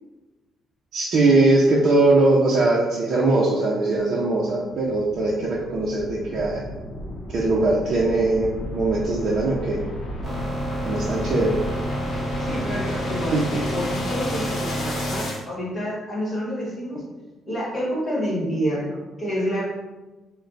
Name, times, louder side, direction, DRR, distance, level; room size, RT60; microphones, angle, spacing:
voice 1, 0.9-6.6 7.3-9.8 10.8-11.6 13.3-13.4, right 2 dB, 45° right, -6 dB, 0.6 m, -20 dB
sound 1, 4.2-15.4, left 1 dB, 55° left, 0.8 m, -34 dB
sound 2, 10.2-15.2, equal, 15° right, 1.0 m, -29 dB
voice 2, 12.4-17.0 17.5-19.6, equal, 20° left, -6 dB, 1.3 m, -28 dB
4.4 x 2.1 x 3.9 m, 1.1 s
cardioid pair, 180°, 0 cm